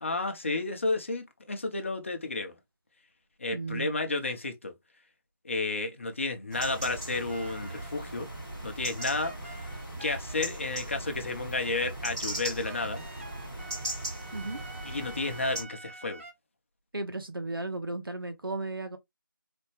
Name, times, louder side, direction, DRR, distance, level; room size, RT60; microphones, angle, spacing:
voice 1, 0.0-2.5 3.4-4.7 5.4-8.3 8.6-9.6 10.0-13.0 14.9-16.2, left 3 dB, 35° left, 0.8 m, -32 dB
voice 2, 3.5-3.9 14.3-14.6 16.9-19.0, right 2 dB, 85° right, 1.0 m, -35 dB
sound 1, 6.5-15.6, right 1 dB, 10° right, 1.0 m, -38 dB
sound 2, 7.3-8.3 9.0-11.3 12.3-16.3, right 2 dB, 40° right, 0.8 m, -48 dB
4.2 x 2.2 x 3.1 m
figure-of-eight pair, 165°, 12 cm